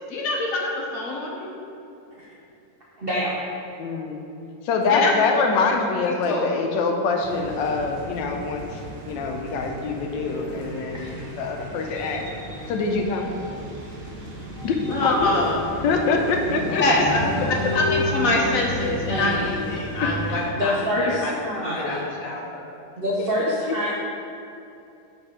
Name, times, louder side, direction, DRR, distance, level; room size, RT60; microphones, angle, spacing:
voice 1, 0.1-1.5 4.9-5.1 5.5-5.6 6.0-6.5 14.9-15.6 16.8-17.2 17.5-22.7, left 2 dB, 60° left, -2 dB, 1.0 m, -25 dB
voice 2, 3.0-3.3 10.9-11.3 16.4-17.5 19.1-19.5 20.6-22.1 23.0-23.9, equal, 70° right, -5 dB, 0.5 m, -27 dB
voice 3, 3.8-4.3 4.6-12.3 12.7-13.3 14.6-15.3 15.8-17.0 20.0-20.4 21.8-21.9 23.7-23.8, left 4 dB, 80° left, 3 dB, 1.3 m, -25 dB
sound 1, 7.2-20.5, equal, 85° right, 1.6 m, -35 dB
sound 2, 11.4-13.9 14.4-19.6, left 2 dB, 30° left, 0.4 m, -35 dB
5.2 x 4.2 x 4.8 m, 2.7 s
omnidirectional pair, 2.0 m